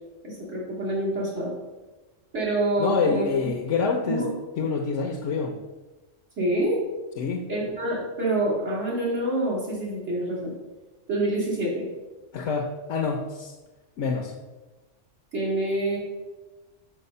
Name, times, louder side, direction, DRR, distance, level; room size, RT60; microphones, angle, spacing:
voice 1, 0.2-1.5 2.3-3.5 4.1-4.3 6.4-6.8 7.5-10.5 11.1-11.9 15.3-16.0, right 1 dB, 70° right, -6 dB, 2.9 m, -26 dB
voice 2, 2.8-4.3 4.6-5.6 7.2-7.5 12.3-13.5 14.0-14.4, left 5 dB, 75° left, 2 dB, 1.0 m, -26 dB
6.3 x 5.6 x 5.3 m, 1.2 s
omnidirectional pair, 1.3 m